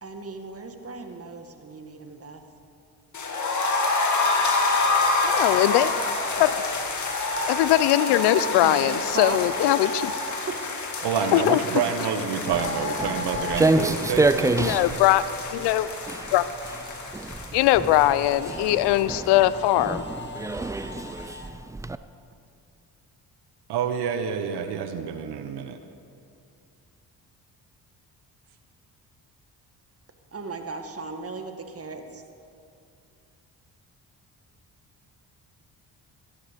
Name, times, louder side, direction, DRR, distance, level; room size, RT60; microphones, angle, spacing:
voice 1, 0.0-2.4 8.4-9.4 9.8-10.0 10.5-10.6 30.3-32.2, right 4 dB, 35° right, 5 dB, 1.6 m, -36 dB
sound 1, 3.1-19.0 19.2-19.3 19.7-19.8, left 3 dB, 45° left, 2.0 m, -28 dB
Camera, 4.3-12.7 13.0-17.5 18.0-21.5, left 3 dB, 25° left, 1.7 m, -45 dB
voice 2, 5.2-5.9 6.4-6.5 7.5-9.9 11.3-11.6 14.6-15.2 15.5-15.9 16.3-16.4 17.5-20.0, left 14 dB, 85° left, 16 dB, 0.6 m, -20 dB
voice 3, 11.0-15.0 23.7-25.8, right 7 dB, 75° right, 8 dB, 1.0 m, -28 dB
Walk footsteps, 12.5-21.9, right 2 dB, 10° right, 0.3 m, -28 dB
14.5 x 11.0 x 5.1 m, 2.4 s
supercardioid pair, 65°, 40 cm